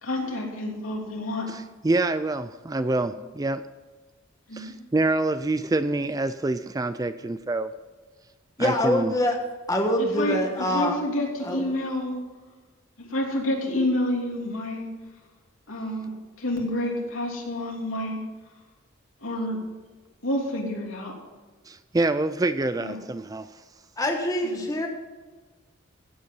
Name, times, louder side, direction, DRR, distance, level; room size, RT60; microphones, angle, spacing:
voice 1, 0.0-1.5 4.5-4.8 10.0-12.2 13.0-14.9 15.7-18.2 19.2-19.6 20.2-21.1 22.8-23.0 24.4-24.6, left 1 dB, 80° left, -1 dB, 3.2 m, -29 dB
voice 2, 1.5-3.6 4.5-7.7 8.6-9.1 21.7-23.5, right 2 dB, 15° right, 12 dB, 0.3 m, -26 dB
voice 3, 8.6-9.4 9.7-10.9 11.4-11.6 24.0-24.9, left 1 dB, 15° left, 2 dB, 1.3 m, -24 dB
15.5 x 8.3 x 5.5 m, 1.3 s
head